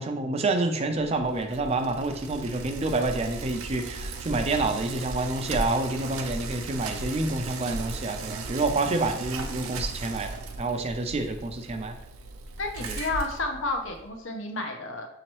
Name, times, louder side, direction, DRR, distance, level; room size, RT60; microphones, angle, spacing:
voice 1, 0.0-11.9 12.9-13.0, right 2 dB, 30° right, 6 dB, 0.4 m, -28 dB
Bicycle, 1.0-14.1, right 3 dB, 80° right, 0.5 m, -37 dB
voice 2, 12.6-15.1, left 2 dB, 60° left, 4 dB, 0.7 m, -31 dB
6.2 x 2.9 x 3.0 m, 0.87 s
head